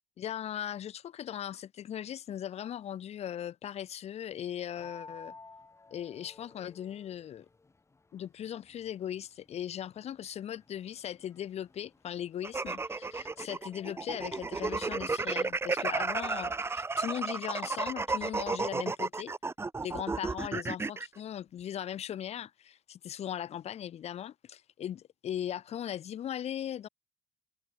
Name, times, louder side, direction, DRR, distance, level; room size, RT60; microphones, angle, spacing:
voice 1, 0.2-5.3 5.9-7.5 8.1-19.3 19.8-26.9, left 10 dB, 40° left, 0.4 m, -38 dB
sound 1, 4.8-16.7, left 3 dB, 15° left, 1.2 m, -56 dB
sound 2, 12.4-21.1, right 3 dB, 15° right, 0.5 m, -33 dB
cardioid pair, 110°, 17 cm